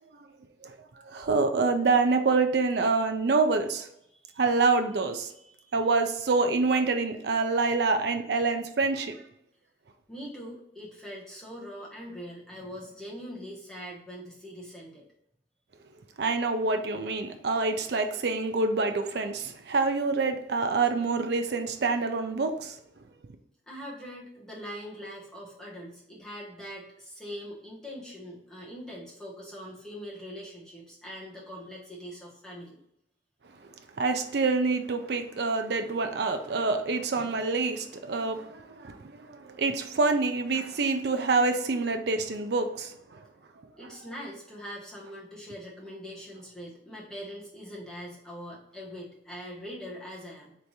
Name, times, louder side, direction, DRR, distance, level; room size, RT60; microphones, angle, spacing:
voice 1, 1.0-3.9 4.4-5.3 5.7-9.2 16.2-22.8 34.0-43.2, right 3 dB, 55° right, 6 dB, 0.4 m, -26 dB
voice 2, 5.3-5.7 10.1-15.1 23.7-32.8 43.8-50.6, equal, 5° left, -6 dB, 1.0 m, -42 dB
3.3 x 3.1 x 4.0 m, 0.78 s
head